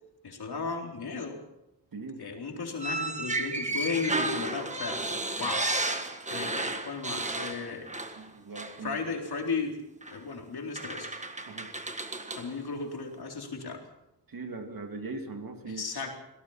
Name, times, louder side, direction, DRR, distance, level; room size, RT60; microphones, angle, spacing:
voice 1, 0.2-1.4 2.2-5.1 5.4-5.7 6.3-7.9 8.8-9.8 10.1-11.1 12.3-13.9 15.7-16.2, left 4 dB, 80° left, 1 dB, 4.1 m, -35 dB
voice 2, 1.9-2.2 8.2-9.0 11.5-11.7 14.3-15.8, right 3 dB, 60° right, 5 dB, 2.7 m, -40 dB
sound 1, 2.8-8.3 8.5-8.8 10.0-10.2 10.7-12.5, right 2 dB, 20° right, 1.5 m, -33 dB
25.5 x 18.0 x 5.8 m, 0.90 s
wide cardioid pair, 160°, 38 cm